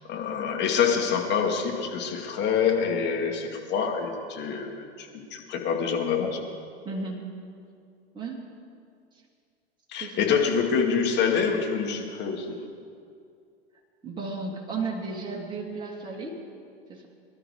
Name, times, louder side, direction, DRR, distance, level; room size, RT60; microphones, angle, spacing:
voice 1, 0.1-6.4 9.9-12.6, left 6 dB, 30° left, 1 dB, 2.3 m, -26 dB
voice 2, 6.8-7.3 8.1-8.5 10.0-10.4 14.0-16.4 16.9-17.1, right 3 dB, 15° right, -3 dB, 2.7 m, -34 dB
23.0 x 12.0 x 4.9 m, 2.3 s
figure-of-eight pair, 90°, 34 cm